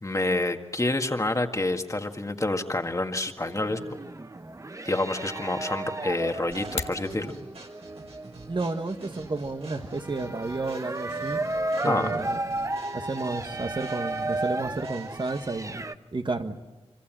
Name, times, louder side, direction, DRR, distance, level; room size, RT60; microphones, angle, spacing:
voice 1, 0.0-3.8 4.8-7.3 11.8-12.1, left 2 dB, 30° left, 5 dB, 1.9 m, -28 dB
sound 1, 3.4-15.9, right 2 dB, 30° right, 0.9 m, -34 dB
sound 2, 6.5-7.1, left 4 dB, 85° left, 1.6 m, -34 dB
sound 3, 6.5-15.7, right 2 dB, 70° right, 5.6 m, -47 dB
voice 2, 8.5-11.4 11.8-12.4 12.9-15.8 16.1-16.5, right 3 dB, 50° right, 7 dB, 1.6 m, -31 dB
25.0 x 25.0 x 7.7 m, 1.2 s
cardioid pair, 50°, 11 cm